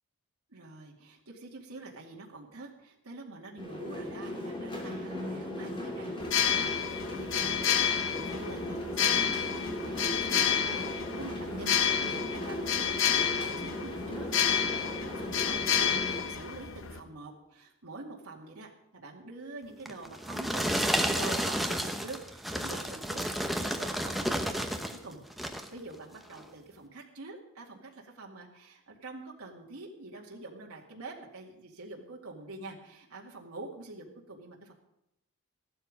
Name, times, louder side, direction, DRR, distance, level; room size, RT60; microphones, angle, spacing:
voice 1, 0.5-14.6 15.0-34.7, right 2 dB, 75° right, -1 dB, 2.2 m, -46 dB
sound 1, 3.6-16.3, left 1 dB, 25° left, 3.0 m, -37 dB
sound 2, 6.2-17.0, left 8 dB, 60° left, 1.0 m, -30 dB
sound 3, 19.9-25.0 25.3-25.7 26.3-26.4, equal, ahead, 0.8 m, -31 dB
15.0 x 12.0 x 5.2 m, 0.85 s
head